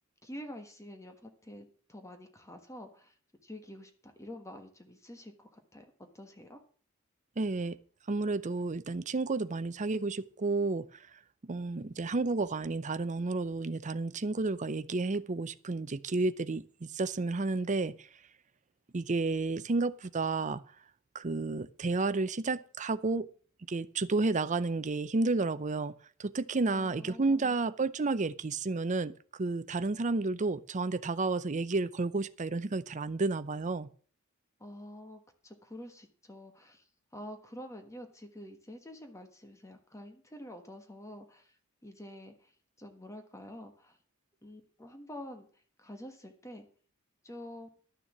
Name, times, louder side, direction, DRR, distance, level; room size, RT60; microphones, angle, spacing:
voice 1, 0.2-3.1 3.4-6.6 26.7-27.6 34.6-36.8 37.1-41.5 41.8-42.5 42.8-44.0 44.4-45.5 45.8-46.7 47.2-47.7, left 1 dB, 15° left, 1.4 m, -47 dB
voice 2, 7.4-7.8 8.1-11.1 11.4-18.1 18.9-20.6 21.1-23.3 23.7-25.9 26.2-33.9, right 3 dB, 35° right, 0.6 m, -31 dB
12.0 x 6.8 x 7.3 m
head